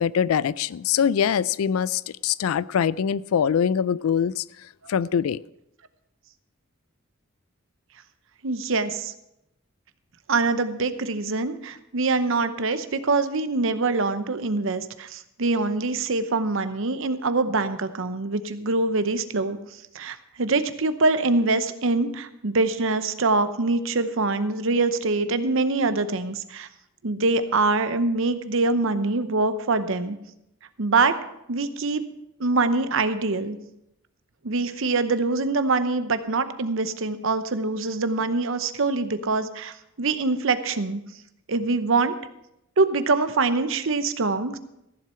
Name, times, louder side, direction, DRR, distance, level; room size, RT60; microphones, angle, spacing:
voice 1, 0.0-5.4, left 7 dB, 90° left, 20 dB, 0.4 m, -23 dB
voice 2, 8.4-9.1 10.3-19.6 19.9-26.7 27.0-30.2 30.8-31.2 31.5-32.0 32.4-33.6 34.4-41.0 41.5-42.2 42.8-44.6, right 3 dB, 70° right, 11 dB, 0.8 m, -24 dB
14.5 x 7.5 x 5.6 m, 0.84 s
head